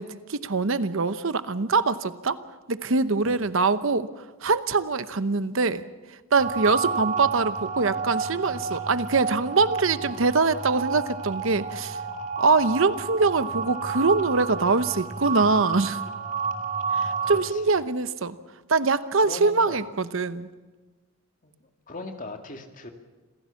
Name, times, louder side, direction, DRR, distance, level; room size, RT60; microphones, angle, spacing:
voice 1, 0.0-2.4 2.7-5.8 6.1-12.0 12.4-16.0 16.9-18.4 18.7-20.5, right 4 dB, 70° right, 13 dB, 0.9 m, -24 dB
sound 1, 6.4-17.4, right 5 dB, 35° right, 2.4 m, -31 dB
voice 2, 17.3-17.8 19.2-19.9 21.4-21.5 21.9-22.9, left 2 dB, 40° left, 4 dB, 2.3 m, -39 dB
27.0 x 16.0 x 7.1 m, 1.3 s
head